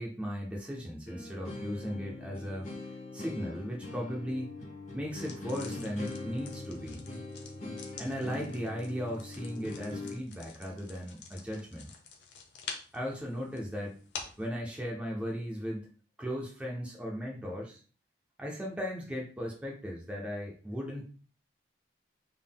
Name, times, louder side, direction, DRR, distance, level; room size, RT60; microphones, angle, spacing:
voice 1, 0.0-2.7 3.1-4.5 4.9-7.0 8.0-11.9 12.9-14.0 14.4-15.9 16.2-17.8 18.4-21.0, equal, 5° right, -2 dB, 0.6 m, -37 dB
sound 1, 1.1-10.2, left 2 dB, 40° left, 1.0 m, -42 dB
sound 2, 5.1-14.5, left 5 dB, 80° left, 0.8 m, -48 dB
3.8 x 3.6 x 2.2 m, 0.39 s
head